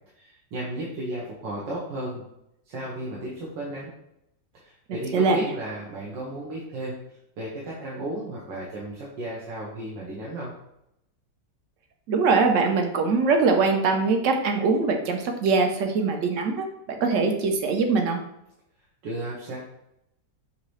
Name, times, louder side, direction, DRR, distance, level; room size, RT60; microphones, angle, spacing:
voice 1, 0.2-2.2 2.7-3.9 4.5-7.0 7.4-10.5 19.0-19.6, right 1 dB, 85° right, -4 dB, 1.6 m, -34 dB
voice 2, 12.1-18.2, right 4 dB, 65° right, 4 dB, 0.7 m, -22 dB
6.3 x 2.7 x 3.1 m, 0.81 s
omnidirectional pair, 2.0 m